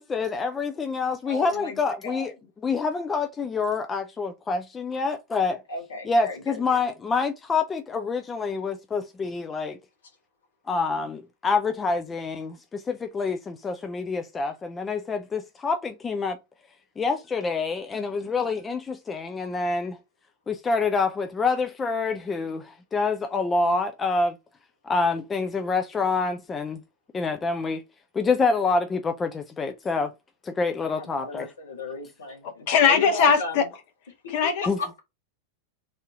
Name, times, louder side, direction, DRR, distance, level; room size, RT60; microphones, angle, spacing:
voice 1, 0.0-2.3 2.6-5.6 6.1-9.8 10.7-16.4 17.0-20.0 20.5-24.4 24.8-26.8 27.1-27.8 28.1-30.1 30.4-31.5 34.7-34.8, left 4 dB, 20° left, 0.4 m, -27 dB
voice 2, 1.2-2.3 5.7-6.6 30.8-33.6 34.6-35.0, left 3 dB, 65° left, 1.3 m, -35 dB
voice 3, 32.7-33.6 34.3-34.6, left 6 dB, 45° left, 1.0 m, -20 dB
3.4 x 2.7 x 3.7 m
figure-of-eight pair, 90°, 0 cm